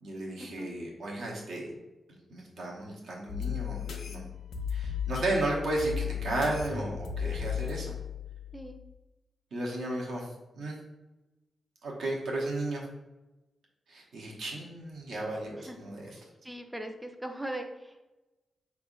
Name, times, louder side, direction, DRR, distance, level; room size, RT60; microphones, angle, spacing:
voice 1, 0.0-1.7 2.3-4.2 4.7-7.9 9.5-10.8 11.8-12.9 13.9-16.2, right 2 dB, 70° right, -2 dB, 1.0 m, -34 dB
sound 1, 3.3-8.9, left 8 dB, 75° left, 0.6 m, -35 dB
voice 2, 16.4-18.1, right 1 dB, 5° right, 5 dB, 0.4 m, -39 dB
5.0 x 3.4 x 2.6 m, 1.1 s
wide cardioid pair, 175°, 0 cm